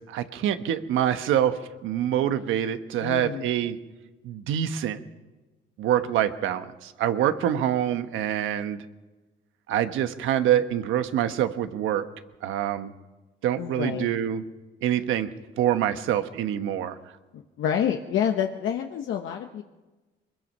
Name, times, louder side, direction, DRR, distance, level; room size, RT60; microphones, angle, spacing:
voice 1, 0.1-3.8 4.2-5.0 5.8-8.8 9.7-12.0 12.4-12.9 13.4-14.4 14.8-15.3 15.6-17.0, right 10 dB, 90° right, 9 dB, 1.2 m, -25 dB
voice 2, 3.0-3.5 13.6-14.1 17.3-19.6, left 9 dB, 75° left, 3 dB, 1.2 m, -28 dB
22.5 x 21.5 x 5.5 m, 1.2 s
cardioid pair, 90°, 20 cm